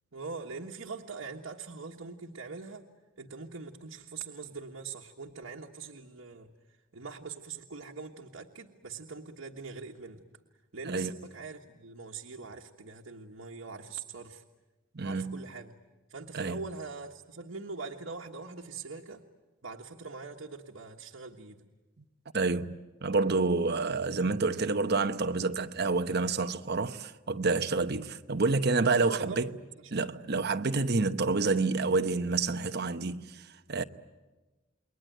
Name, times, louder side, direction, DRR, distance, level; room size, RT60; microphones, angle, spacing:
voice 1, 0.1-2.9 3.2-10.2 10.7-14.4 15.0-15.7 16.1-19.2 19.6-21.6 29.0-30.0, right 4 dB, 90° right, 1.4 m, -42 dB
voice 2, 14.9-15.4 16.3-16.6 22.3-29.5 29.9-33.8, right 3 dB, 55° right, 0.9 m, -28 dB
29.0 x 22.0 x 9.1 m
head